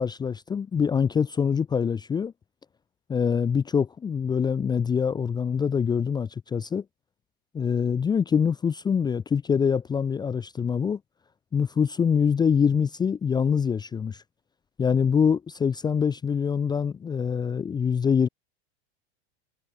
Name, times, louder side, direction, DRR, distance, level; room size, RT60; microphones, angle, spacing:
voice 1, 0.0-2.3 3.1-6.8 7.5-11.0 11.5-14.2 14.8-18.3, left 6 dB, 15° left, 0.6 m, -24 dB
supercardioid pair, 140°, 33 cm